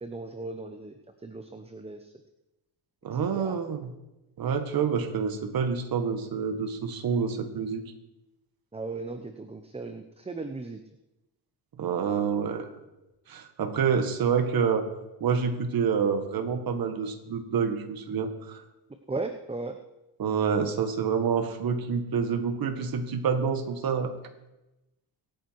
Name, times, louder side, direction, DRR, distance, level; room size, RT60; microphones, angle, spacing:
voice 1, 0.0-2.1 3.3-3.6 8.7-10.8 19.1-19.8, right 3 dB, 15° right, 7 dB, 0.9 m, -37 dB
voice 2, 3.0-3.9 4.4-7.8 11.8-12.7 13.3-14.9 15.2-18.6 20.2-24.1, right 6 dB, 55° right, 7 dB, 1.8 m, -27 dB
23.5 x 9.5 x 4.7 m, 0.97 s
cardioid pair, 120°, 43 cm